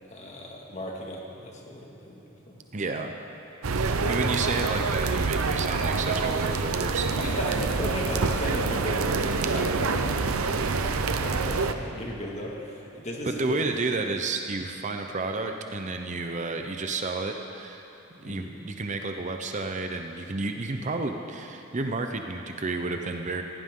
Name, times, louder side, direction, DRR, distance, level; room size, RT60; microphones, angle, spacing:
voice 1, 0.1-2.6 3.7-4.1 7.2-10.0 10.8-14.0 18.3-18.5, left 1 dB, 35° left, -1 dB, 2.0 m, -36 dB
voice 2, 2.7-3.1 3.8-7.2 13.2-17.8 18.1-23.4, right 3 dB, 35° right, 5 dB, 0.7 m, -31 dB
sound 1, 3.6-11.7, right 4 dB, 80° right, 0.7 m, -26 dB
19.5 x 17.0 x 3.8 m, 3.0 s
head